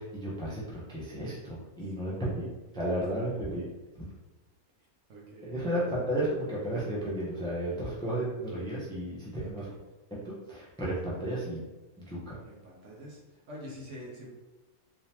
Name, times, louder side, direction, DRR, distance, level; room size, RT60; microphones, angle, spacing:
voice 1, 0.0-2.5 2.7-3.6 5.4-9.7 10.1-11.6 12.0-12.4, right 1 dB, 5° left, -7 dB, 0.7 m, -33 dB
voice 2, 2.0-2.6 5.1-5.8 9.4-9.8 12.4-14.3, equal, 60° right, -3 dB, 1.1 m, -47 dB
3.6 x 3.4 x 2.9 m, 1.2 s
omnidirectional pair, 1.5 m